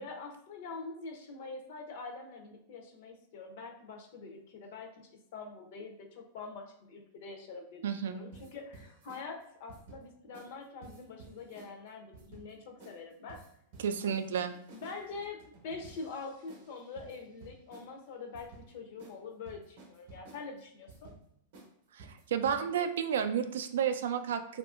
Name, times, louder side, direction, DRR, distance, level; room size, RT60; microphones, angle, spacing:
voice 1, 0.0-4.9 5.3-13.4 14.7-21.1, left 4 dB, 50° left, 3 dB, 0.5 m, -45 dB
voice 2, 7.8-8.2 13.8-14.6 21.9-24.6, right 8 dB, 85° right, 9 dB, 0.3 m, -31 dB
sound 1, 8.3-9.2 9.7-10.0 10.3-10.5 10.8-11.7 12.1-12.5 12.8-13.0 13.3-17.9 18.3-18.7 19.0-19.2 19.5-20.4 20.9-21.2 21.5-21.7 22.0-22.6, right 3 dB, 55° right, 0.7 m, -53 dB
2.7 x 2.4 x 2.4 m, 0.73 s
supercardioid pair, 170°, 0 cm